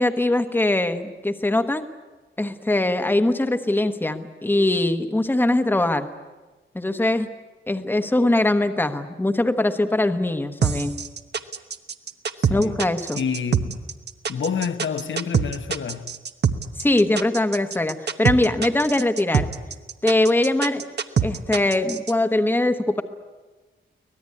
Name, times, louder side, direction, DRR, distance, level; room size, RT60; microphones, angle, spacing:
voice 1, 0.0-1.8 2.4-6.1 6.7-7.3 7.7-10.9 12.5-13.2 16.8-19.5 20.0-20.9 21.2-23.0, left 1 dB, 10° left, 1.1 m, -22 dB
sound 1, 10.6-22.1, right 7 dB, 55° right, 1.1 m, -24 dB
voice 2, 12.4-12.8 13.1-13.8 14.3-16.2, left 6 dB, 70° left, 1.2 m, -28 dB
24.5 x 18.5 x 9.6 m
wide cardioid pair, 165°, 20 cm